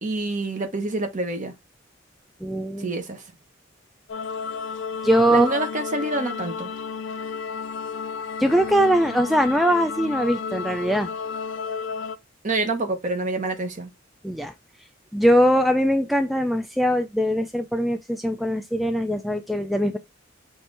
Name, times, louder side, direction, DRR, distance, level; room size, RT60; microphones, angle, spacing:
voice 1, 0.0-1.5 2.8-3.2 5.3-6.7 12.4-13.9, right 2 dB, 40° right, 1.0 m, -27 dB
voice 2, 2.4-2.9 5.0-5.6 8.4-11.1 14.2-14.5 15.1-20.0, equal, ahead, 0.3 m, -21 dB
sound 1, 4.1-12.2, left 5 dB, 65° left, 0.4 m, -32 dB
5.9 x 2.6 x 3.3 m
head